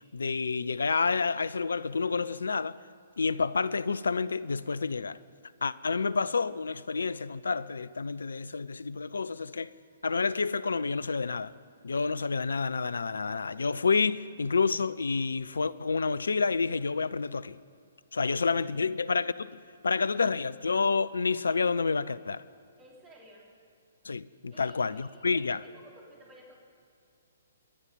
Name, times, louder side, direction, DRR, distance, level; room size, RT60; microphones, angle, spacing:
voice 1, 0.1-2.8 3.2-5.2 5.6-9.7 10.0-11.5 11.8-17.6 18.1-22.4 24.0-25.6, left 4 dB, 70° left, 0.5 m, -29 dB
voice 2, 18.5-18.8 22.8-23.5 24.5-26.6, right 1 dB, 15° right, 3.5 m, -54 dB
26.0 x 9.9 x 5.3 m
figure-of-eight pair, 125°, 0 cm